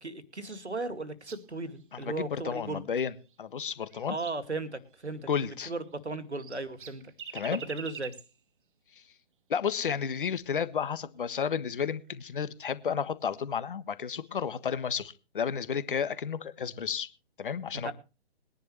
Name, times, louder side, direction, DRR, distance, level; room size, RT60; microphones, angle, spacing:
voice 1, 0.0-2.9 4.1-7.0 7.5-8.1 17.8-17.9, right 3 dB, 85° right, 12 dB, 2.3 m, -36 dB
sound 1, 1.2-1.8 3.2-4.5 4.9-5.1 5.8-8.4 9.9-10.1 11.3-11.4 12.0-12.4 14.2-14.5, right 7 dB, 50° right, 1.5 m, -47 dB
voice 2, 1.9-3.1 3.4-4.2 5.3-5.7 7.3-7.6 9.5-17.1 17.4-17.9, left 7 dB, 50° left, 14 dB, 1.4 m, -32 dB
21.5 x 10.5 x 3.2 m, 0.32 s
figure-of-eight pair, 135°, 33 cm